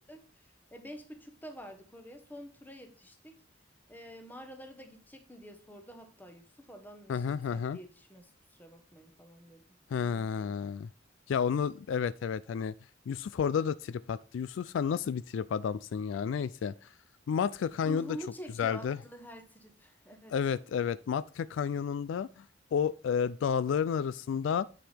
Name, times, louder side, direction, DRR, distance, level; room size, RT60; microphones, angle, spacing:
voice 1, 0.1-3.4 3.9-9.6 10.0-10.6 17.8-20.4, equal, 10° left, 1.1 m, -48 dB
voice 2, 7.1-7.8 9.9-10.9 11.3-12.7 13.1-16.7 17.3-18.2 18.6-19.0 20.3-22.4 22.7-24.7, left 7 dB, 70° left, 0.3 m, -31 dB
9.0 x 4.9 x 3.4 m
head